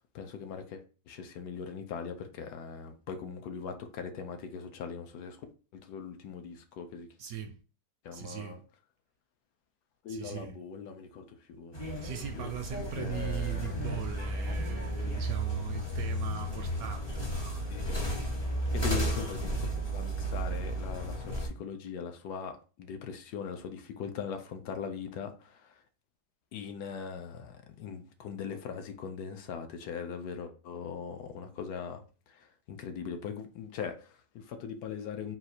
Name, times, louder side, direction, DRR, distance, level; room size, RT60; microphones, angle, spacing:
voice 1, 0.1-5.4 5.8-7.1 8.0-8.6 10.0-11.9 12.3-12.5 13.0-13.7 17.7-18.0 18.7-25.8 26.5-35.4, left 6 dB, 75° left, 1.1 m, -40 dB
voice 2, 7.2-7.6 8.1-8.6 10.1-10.6 12.0-18.1, right 9 dB, 70° right, 0.9 m, -40 dB
sound 1, 11.7-21.5, right 1 dB, 40° left, 0.4 m, -33 dB
4.0 x 2.4 x 4.2 m
omnidirectional pair, 1.8 m